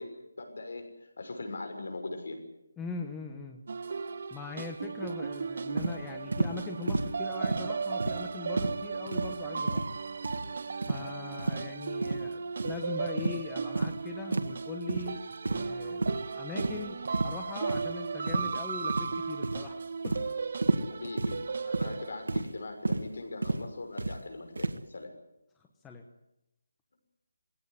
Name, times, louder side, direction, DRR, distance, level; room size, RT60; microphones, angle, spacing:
voice 1, 0.0-2.4 20.9-25.1, left 2 dB, 60° left, 5 dB, 6.2 m, -41 dB
voice 2, 2.8-3.6 4.3-9.9 10.9-20.2 25.8-26.0, left 4 dB, 5° left, 3 dB, 1.1 m, -41 dB
sound 1, 3.7-22.4, right 5 dB, 45° right, 0.8 m, -36 dB
sound 2, 5.8-6.0 6.3-6.5 6.9-7.1 7.4-7.7 8.0-8.3 8.6-8.8 9.1-9.4 9.7-9.9 10.2-10.5 10.8-11.0 11.4-11.6 12.0-12.2 12.6-12.8 13.2-13.4 13.8-14.0 14.3-14.5 14.9-15.1 15.5-15.7 16.0-16.2 16.6-16.9 17.1-17.3 17.7-17.8 18.3-18.6 18.9-19.2 19.4-19.7 20.0-20.3 20.6-20.9 21.2-21.4 21.7-21.9 22.3-22.5 22.9-23.0 23.4-23.6 24.0-24.2 24.6-24.8, right 2 dB, 85° right, 1.7 m, -30 dB
21.0 x 17.0 x 9.7 m, 0.89 s
hypercardioid pair, 175°, 0 cm